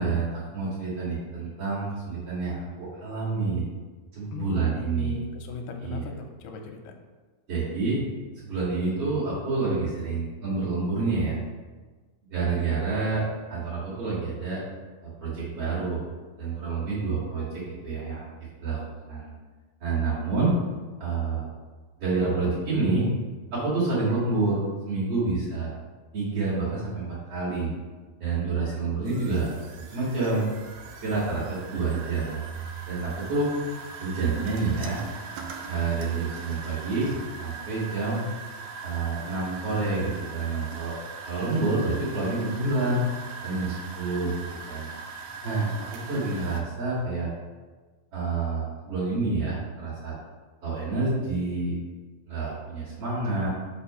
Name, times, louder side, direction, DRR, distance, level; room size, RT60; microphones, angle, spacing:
voice 1, 0.0-3.6 4.1-5.3 5.8-6.1 7.5-8.0 8.4-11.4 12.3-14.6 15.0-16.0 16.4-18.3 18.6-18.8 19.1-19.3 19.8-20.5 21.0-21.4 22.0-23.1 23.5-25.7 26.1-27.7 28.2-29.5 29.9-30.5 31.0-32.4 32.9-33.5 34.0-35.0 35.7-37.1 37.4-38.2 38.8-40.9 41.3-43.0 43.4-44.3 44.7-44.9 45.4-47.3 48.1-50.1 50.6-51.8 52.3-53.5, right 3 dB, 45° right, -9 dB, 2.3 m, -28 dB
voice 2, 4.3-6.9, left 5 dB, 85° left, 3 dB, 2.6 m, -38 dB
sound 1, 29.1-46.6, right 4 dB, 75° right, 2.2 m, -40 dB
5.7 x 4.5 x 5.5 m, 1.3 s
omnidirectional pair, 4.6 m